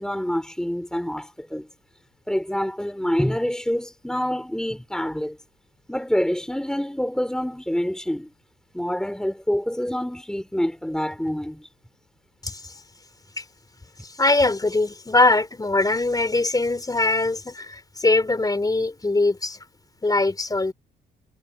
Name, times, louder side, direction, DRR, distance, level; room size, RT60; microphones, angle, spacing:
voice 1, 0.0-1.7 2.3-5.4 5.9-8.3 8.7-11.7, equal, 5° left, 3.1 m, -26 dB
voice 2, 12.4-12.7 13.4-13.5 14.0-19.6 20.0-20.7, left 2 dB, 20° left, 4.4 m, -22 dB
cardioid pair, 90°, 20 cm